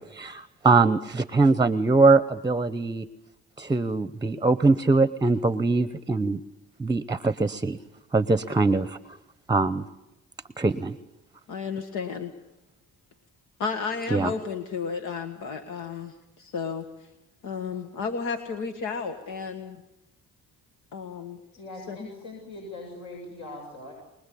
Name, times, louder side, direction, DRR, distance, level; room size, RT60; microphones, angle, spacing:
voice 1, 0.0-3.0 3.6-6.4 6.8-7.8 8.1-9.0 9.5-9.9 10.6-11.0 14.1-14.3, right 3 dB, 15° right, 14 dB, 0.8 m, -22 dB
voice 2, 11.5-12.3 13.6-16.9 17.4-19.8 20.9-21.4 21.9-22.1, left 5 dB, 85° left, 6 dB, 1.7 m, -32 dB
voice 3, 21.6-23.9, left 2 dB, 70° left, -1 dB, 8.0 m, -41 dB
24.5 x 20.5 x 8.5 m, 0.91 s
cardioid pair, 90°, 30 cm